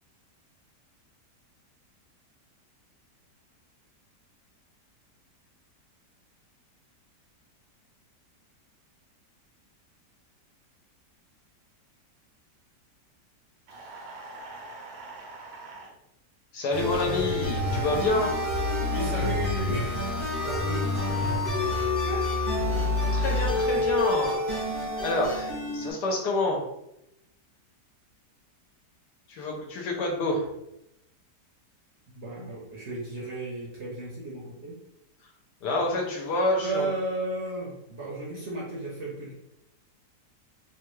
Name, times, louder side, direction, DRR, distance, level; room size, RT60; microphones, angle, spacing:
sound 1, 13.7-15.9, right 2 dB, 85° right, 1.3 m, -43 dB
voice 1, 16.5-18.3 23.1-24.4 24.8-26.6 29.3-30.5 35.6-36.9, left 2 dB, 75° left, 0 dB, 1.3 m, -28 dB
sound 2, 16.7-25.9, left 2 dB, 25° left, 0.9 m, -27 dB
voice 2, 18.9-21.1 21.8-22.3 32.1-34.7 36.6-39.3, right 2 dB, 55° right, -5 dB, 0.8 m, -34 dB
3.3 x 2.2 x 3.1 m, 0.83 s
omnidirectional pair, 1.9 m